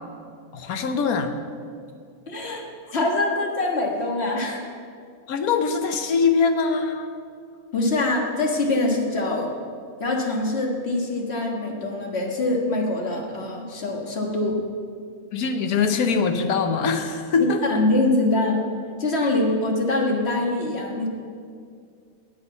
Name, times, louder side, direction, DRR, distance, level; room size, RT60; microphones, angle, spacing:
voice 1, 0.5-1.3 5.3-7.1 15.3-17.8, left 5 dB, 80° left, 7 dB, 1.4 m, -22 dB
voice 2, 2.3-2.6 2.9-4.7 7.7-9.5 10.0-14.6 17.4-18.6 19.0-21.1, left 2 dB, 45° left, 1 dB, 1.8 m, -24 dB
9.7 x 8.3 x 8.1 m, 2.3 s
omnidirectional pair, 1.5 m